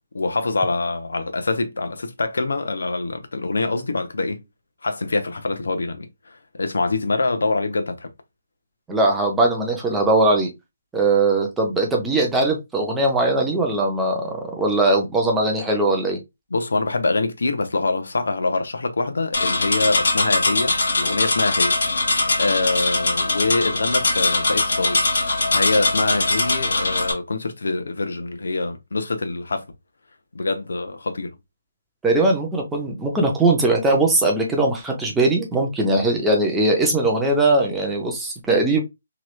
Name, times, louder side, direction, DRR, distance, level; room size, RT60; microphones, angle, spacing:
voice 1, 0.1-4.4 4.8-8.1 16.5-22.1 22.4-25.0 25.5-29.6 30.3-31.4, left 3 dB, 75° left, 0.7 m, -25 dB
voice 2, 8.9-10.5 10.9-16.2 32.0-38.8, right 2 dB, 5° right, 0.4 m, -20 dB
sound 1, 19.3-27.1, left 2 dB, 60° left, 1.0 m, -21 dB
2.9 x 2.3 x 3.1 m
hypercardioid pair, 180°, 0 cm